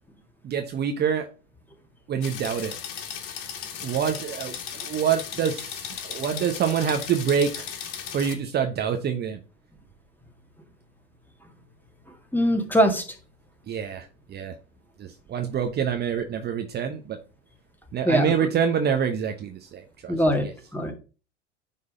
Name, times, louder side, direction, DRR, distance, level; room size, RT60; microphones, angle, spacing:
voice 1, 0.4-1.3 2.1-2.8 3.8-7.7 8.1-9.4 13.7-14.5 15.0-17.2 17.9-20.1 20.4-20.5, right 7 dB, 30° right, 6 dB, 1.0 m, -26 dB
sound 1, 2.2-8.3, left 8 dB, 55° left, 2.0 m, -36 dB
voice 2, 12.3-13.0 18.0-18.3 20.1-20.5 20.7-20.9, equal, 5° left, 5 dB, 2.0 m, -21 dB
9.5 x 3.8 x 5.0 m, 0.34 s
hypercardioid pair, 90°, 35 cm